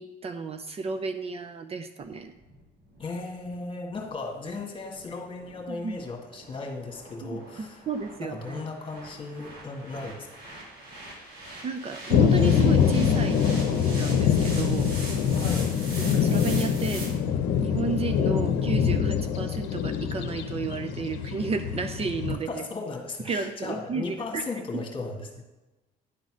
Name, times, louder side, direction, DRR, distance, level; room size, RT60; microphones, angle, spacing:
voice 1, 0.0-2.3 5.7-6.0 7.2-7.4 7.9-8.6 11.6-13.4 13.7-15.0 16.0-17.1 17.6-22.6 23.3-24.4, right 4 dB, 35° right, 8 dB, 0.6 m, -32 dB
sound 1, 2.0-17.1, right 1 dB, 65° right, 3.0 m, -43 dB
voice 2, 3.0-7.9 8.2-10.3 15.3-15.7 22.5-25.4, left 3 dB, 30° left, 2 dB, 1.7 m, -36 dB
sound 2, 12.1-22.4, left 7 dB, 90° left, 0.7 m, -24 dB
10.0 x 4.1 x 6.2 m, 1.1 s
cardioid pair, 110°, 17 cm